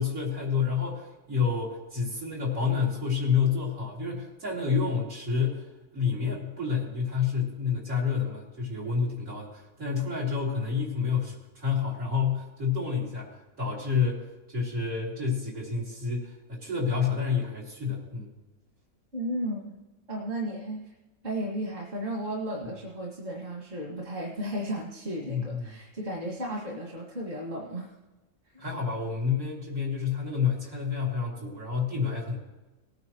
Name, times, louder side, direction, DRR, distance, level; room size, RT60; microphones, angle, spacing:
voice 1, 0.0-5.6 5.9-18.3 25.3-25.6 28.6-32.4, left 6 dB, 75° right, -4 dB, 3.4 m, -29 dB
voice 2, 19.1-19.8 20.1-20.9 21.2-27.9 28.5-28.6, right 1 dB, 55° right, -2 dB, 2.4 m, -34 dB
19.0 x 9.5 x 3.1 m, 1.1 s
omnidirectional pair, 1.4 m